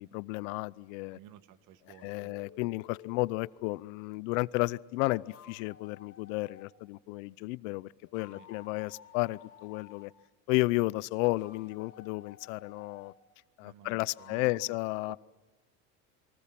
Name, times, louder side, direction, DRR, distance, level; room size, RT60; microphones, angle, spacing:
voice 1, 0.0-1.2 2.0-10.1 10.5-13.1 13.6-15.2, left 22 dB, 80° left, 21 dB, 0.7 m, -33 dB
voice 2, 1.1-2.7 8.3-8.5 13.6-14.8 15.1-15.2, right 11 dB, 50° right, 13 dB, 1.6 m, -55 dB
sound 1, 1.9-3.8 4.9-6.7 8.0-10.1 11.2-13.2 14.1-14.6, left 9 dB, 35° left, 3.8 m, -54 dB
29.5 x 23.5 x 6.0 m, 1.2 s
cardioid pair, 145°, 38 cm